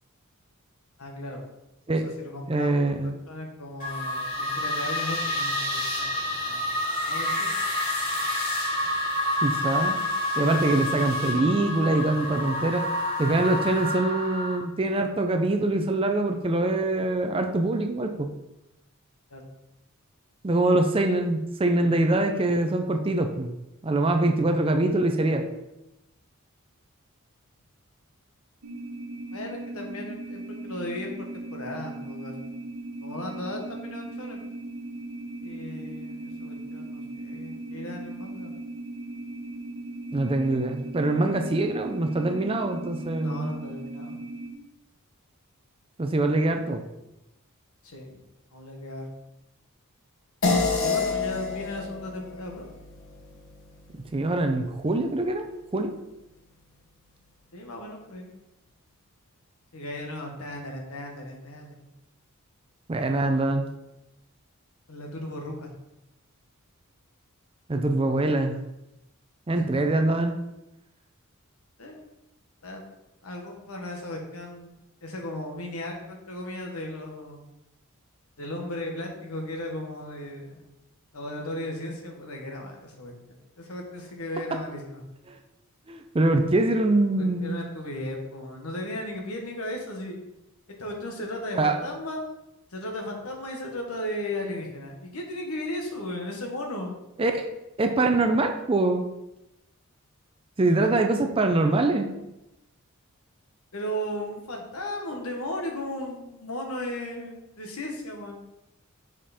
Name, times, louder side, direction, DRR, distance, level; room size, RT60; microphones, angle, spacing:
voice 1, 1.0-1.4 1.9-2.9 3.3-6.8 7.0-7.5 19.3-19.5 29.3-32.3 33.0-34.4 35.4-38.5 43.2-44.2 47.8-48.2 48.5-49.1 50.8-52.7 57.5-58.3 59.7-61.8 64.9-65.7 69.5-69.8 71.8-72.0 72.6-72.8 73.2-74.7 75.0-77.4 78.4-80.7 81.1-85.0 87.2-90.2 90.8-92.2 92.7-97.0 100.8-100.9 103.7-108.4, left 1 dB, 80° left, 1 dB, 1.3 m, -36 dB
voice 2, 2.5-3.1 9.4-10.0 10.4-12.8 13.2-18.3 20.4-23.5 23.8-25.5 40.1-43.5 46.0-46.8 54.1-55.5 55.7-55.9 62.9-63.6 67.7-68.5 69.5-70.3 85.3-85.4 85.9-87.6 91.5-91.7 97.2-97.5 97.8-99.0 100.6-102.1, right 2 dB, 25° right, 5 dB, 0.5 m, -24 dB
sound 1, 3.8-14.6, left 1 dB, 40° left, 2.6 m, -28 dB
sound 2, 28.6-44.5, right 2 dB, 85° right, 0.9 m, -38 dB
sound 3, 50.4-55.2, left 4 dB, 65° left, 1.1 m, -29 dB
5.5 x 5.1 x 4.2 m, 0.92 s
head